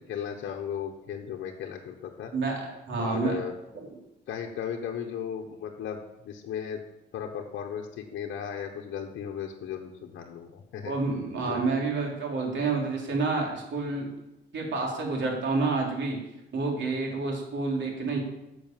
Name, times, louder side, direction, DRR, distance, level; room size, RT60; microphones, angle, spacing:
voice 1, 0.0-2.3 3.0-3.5 4.3-6.8 7.1-10.9 11.4-11.6, left 8 dB, 70° left, 1 dB, 1.1 m, -36 dB
voice 2, 2.3-3.4 10.8-14.1 14.5-16.2 16.5-18.2, right 3 dB, 65° right, 0 dB, 3.3 m, -29 dB
10.5 x 6.4 x 7.4 m, 0.94 s
cardioid pair, 90°, 20 cm